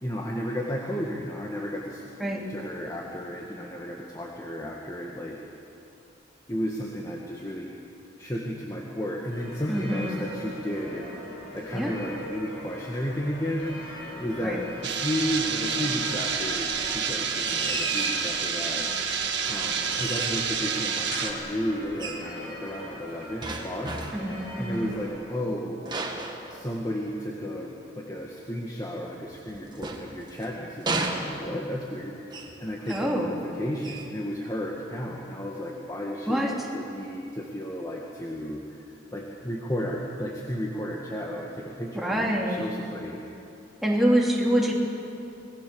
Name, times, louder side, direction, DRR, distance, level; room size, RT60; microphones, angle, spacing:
voice 1, 0.0-2.0 2.4-5.4 6.5-7.7 8.2-11.1 11.5-18.9 19.1-19.2 19.5-23.9 24.6-25.8 26.5-43.2, equal, 15° left, -1 dB, 1.8 m, -33 dB
sound 1, 9.3-25.1, equal, 55° left, 7.6 m, -41 dB
voice 2, 9.7-10.2 11.7-11.9 14.4-14.6 24.1-24.8 32.9-33.3 36.3-36.5 41.9-42.7 43.8-44.7, equal, ahead, -3 dB, 3.0 m, -25 dB
sound 2, 14.8-21.3, right 6 dB, 60° right, 2.1 m, -29 dB
sound 3, 17.4-18.3 19.9-20.6 22.0-22.3 23.4-24.3 25.8-27.1 29.3-30.4 30.8-31.7 32.3-32.6 32.8-33.2 33.8-34.1, right 2 dB, 20° right, 2.0 m, -33 dB
26.5 x 20.0 x 7.0 m, 2.8 s
head